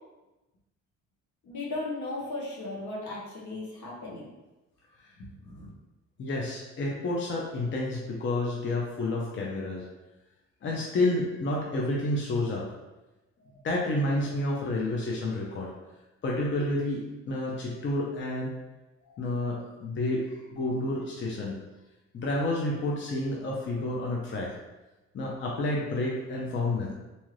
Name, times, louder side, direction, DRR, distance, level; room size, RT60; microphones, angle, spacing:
voice 1, 1.4-4.2 5.2-5.7, left 2 dB, 70° left, -4 dB, 1.1 m, -36 dB
voice 2, 6.2-9.8 10.6-12.6 13.4-15.7 16.2-18.6 19.0-21.6 22.1-24.5 25.1-26.9, left 2 dB, 40° left, -3 dB, 0.6 m, -30 dB
2.7 x 2.4 x 3.2 m, 1.1 s
cardioid pair, 90°, 30 cm